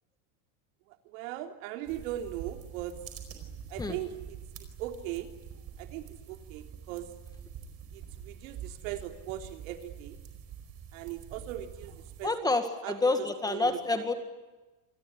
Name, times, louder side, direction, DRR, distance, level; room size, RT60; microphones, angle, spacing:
voice 1, 1.1-2.9 3.7-4.4 4.8-5.3 5.8-7.1 7.9-10.2 10.9-12.5 12.8-13.1 13.5-14.0, right 13 dB, 70° right, 5 dB, 3.5 m, -39 dB
sound 1, 1.9-12.3, right 8 dB, 35° right, 4.8 m, -46 dB
voice 2, 12.2-14.1, left 3 dB, 10° left, 7 dB, 1.9 m, -28 dB
28.0 x 20.5 x 9.5 m, 1.2 s
cardioid pair, 170°, 41 cm